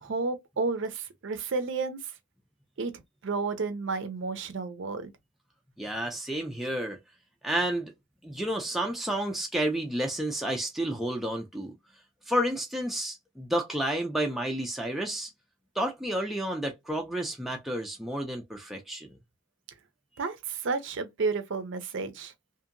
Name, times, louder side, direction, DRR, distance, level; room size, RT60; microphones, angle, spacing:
voice 1, 0.0-2.0 2.8-2.9 3.2-5.1 20.2-22.3, right 4 dB, 55° right, 0.5 m, -31 dB
voice 2, 5.8-7.0 7.4-7.9 8.2-11.7 12.3-15.3 15.8-19.1, right 1 dB, ahead, 0.4 m, -30 dB
2.7 x 2.5 x 2.5 m
head